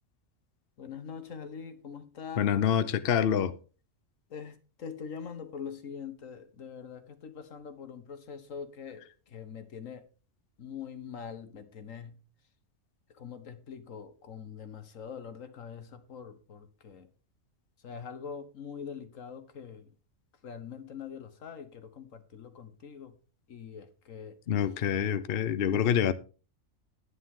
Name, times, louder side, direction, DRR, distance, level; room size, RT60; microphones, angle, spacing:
voice 1, 0.8-2.5 4.3-10.1 10.6-12.2 13.1-17.1 17.8-19.9 20.4-23.2 23.5-24.4, left 7 dB, 80° left, 1.6 m, -43 dB
voice 2, 2.4-3.5 24.5-26.1, left 9 dB, 55° left, 0.8 m, -26 dB
11.0 x 9.7 x 3.7 m
omnidirectional pair, 1.4 m